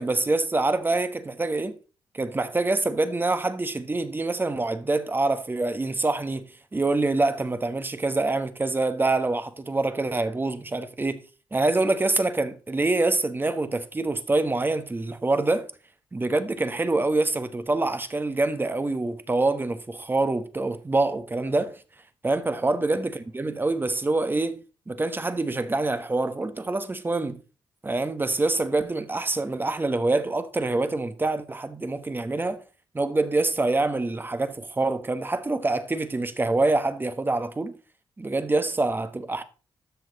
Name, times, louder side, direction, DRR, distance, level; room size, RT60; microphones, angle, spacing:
voice 1, 0.0-1.8 2.1-6.5 6.7-11.2 11.5-15.7 16.1-21.7 22.2-27.4 27.8-32.6 32.9-37.7 38.2-39.4, right 2 dB, 25° right, 1.3 m, -25 dB
12.5 x 6.4 x 4.1 m
cardioid pair, 70°, 9 cm